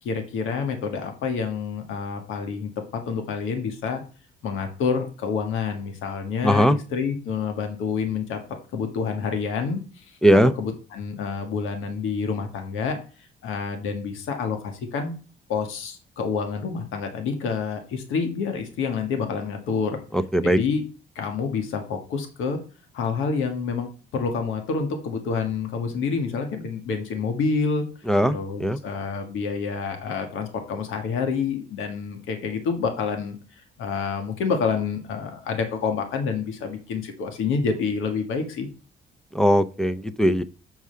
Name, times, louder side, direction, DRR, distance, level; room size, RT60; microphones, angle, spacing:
voice 1, 0.0-4.0 4.4-8.4 8.7-10.2 10.6-13.0 13.4-15.1 15.5-20.0 20.4-20.8 21.1-22.6 22.9-27.9 28.3-38.7, left 5 dB, 85° left, 5 dB, 1.6 m, -28 dB
voice 2, 6.4-6.8 10.2-10.5 20.1-20.6 28.1-28.8 39.3-40.4, equal, 5° left, 12 dB, 0.6 m, -19 dB
7.3 x 4.7 x 5.6 m, 0.36 s
cardioid pair, 90°, 20 cm